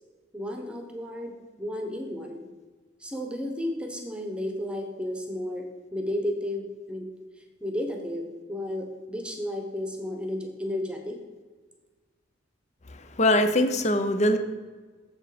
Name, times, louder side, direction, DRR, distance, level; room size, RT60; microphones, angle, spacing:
voice 1, 0.3-2.5 3.0-7.1 7.4-11.2, left 1 dB, 5° right, 3 dB, 1.0 m, -33 dB
voice 2, 12.9-14.4, left 1 dB, 35° left, 8 dB, 0.7 m, -23 dB
7.2 x 7.2 x 5.0 m, 1.4 s
head